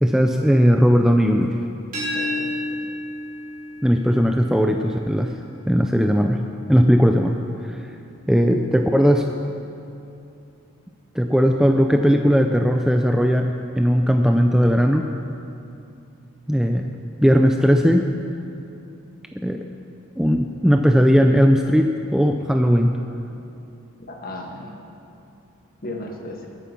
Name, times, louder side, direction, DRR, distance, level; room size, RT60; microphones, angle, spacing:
voice 1, 0.0-1.6 3.8-5.3 5.7-7.8 8.3-9.3 11.1-13.5 13.8-15.1 16.5-16.9 17.2-18.1 19.4-19.7 20.2-23.0, equal, ahead, 4 dB, 0.4 m, -18 dB
sound 1, 1.9-7.7, left 1 dB, 35° right, 4.1 m, -33 dB
voice 2, 2.1-2.8 24.1-24.8 25.8-26.5, left 1 dB, 40° left, 1 dB, 1.6 m, -35 dB
21.5 x 9.0 x 5.8 m, 2.7 s
head